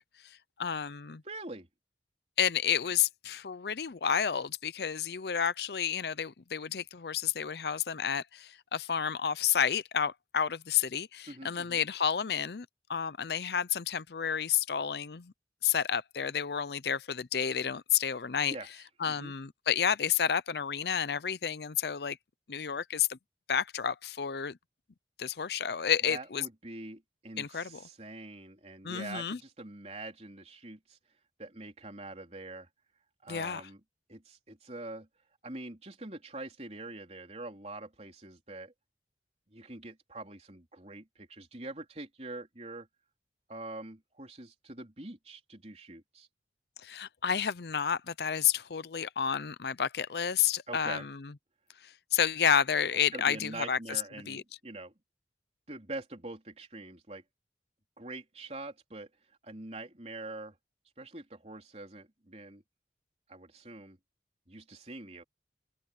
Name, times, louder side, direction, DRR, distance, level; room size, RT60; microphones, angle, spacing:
voice 1, 0.6-1.2 2.4-15.3 15.6-18.6 19.0-22.2 22.5-23.2 23.5-24.6 25.2-26.4 27.4-27.8 28.8-29.4 33.3-33.6 46.8-51.3 51.8-54.0 54.3-54.4, left 8 dB, 65° left, 0.6 m, -30 dB
voice 2, 1.2-1.7 11.3-11.8 18.5-18.7 19.0-19.3 26.0-31.0 31.4-32.7 33.2-33.8 34.1-35.1 35.4-38.7 39.5-42.9 43.5-46.3 50.7-51.1 53.1-54.9 55.7-57.2 58.0-59.1 59.4-60.5 61.0-62.6 63.3-64.0 64.5-65.2, right 2 dB, 35° right, 3.7 m, -44 dB
open air
head